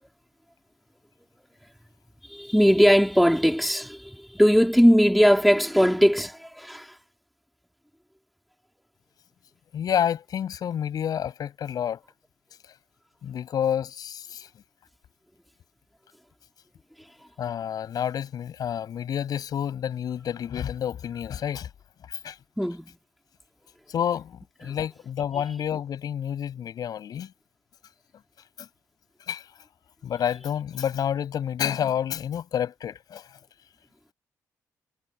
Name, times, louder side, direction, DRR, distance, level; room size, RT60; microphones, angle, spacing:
voice 1, 2.3-6.9 22.6-23.0 24.6-24.8, equal, ahead, 4.1 m, -20 dB
voice 2, 9.7-12.0 13.2-14.5 17.4-21.7 22.1-22.4 23.9-27.3 28.6-28.7 29.3-29.5 30.0-33.3, left 9 dB, 65° left, 7.8 m, -29 dB
supercardioid pair, 60°, 7 cm